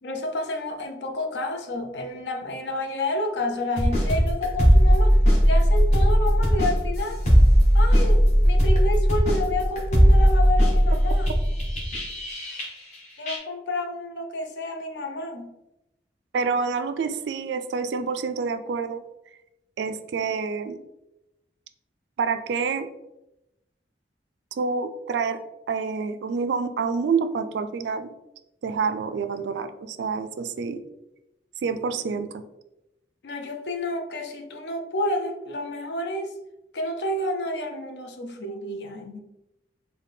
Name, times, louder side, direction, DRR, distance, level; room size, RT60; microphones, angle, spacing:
voice 1, 0.0-5.2 5.4-7.2 7.7-11.3 13.2-15.5 33.2-36.3 36.7-39.2, left 1 dB, 70° left, 4 dB, 0.5 m, -30 dB
sound 1, 3.8-13.0 13.3-13.4, equal, 40° left, 1.0 m, -18 dB
voice 2, 16.3-19.0 19.8-20.8 22.2-22.9 24.5-25.4 25.7-28.1 28.6-30.8 31.6-32.4, right 5 dB, 75° right, 10 dB, 0.3 m, -27 dB
4.0 x 2.2 x 3.4 m, 0.92 s
head